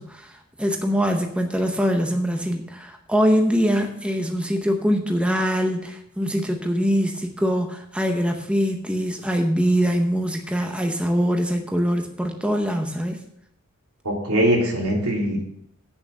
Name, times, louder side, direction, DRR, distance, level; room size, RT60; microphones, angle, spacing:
voice 1, 0.0-13.2, equal, 5° right, 4 dB, 0.8 m, -23 dB
voice 2, 14.0-15.4, right 1 dB, 80° right, -1 dB, 3.2 m, -21 dB
8.5 x 7.2 x 6.5 m, 0.70 s
head